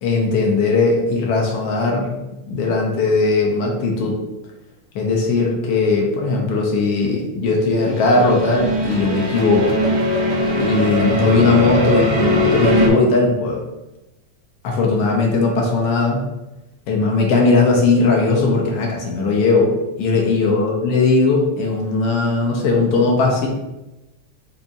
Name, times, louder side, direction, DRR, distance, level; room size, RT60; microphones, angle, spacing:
voice 1, 0.0-2.2 2.5-4.2 4.9-9.8 10.6-13.6 14.6-16.2 16.9-19.7 20.0-23.5, left 3 dB, 75° left, -1 dB, 1.4 m, -18 dB
sound 1, 7.8-12.9, equal, 80° right, 1.1 m, -20 dB
5.3 x 2.3 x 4.0 m, 0.98 s
omnidirectional pair, 3.3 m